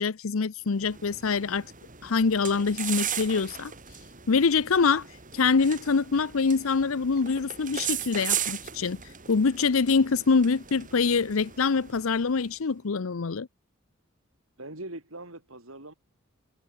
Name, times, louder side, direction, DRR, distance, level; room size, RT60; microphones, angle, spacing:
voice 1, 0.0-1.7 2.0-3.7 4.3-5.0 5.3-9.0 9.3-13.5, left 5 dB, 70° left, 0.7 m, -25 dB
sound 1, 0.7-12.5, right 9 dB, 40° right, 6.9 m, -37 dB
voice 2, 14.6-15.9, right 2 dB, 70° right, 7.0 m, -41 dB
head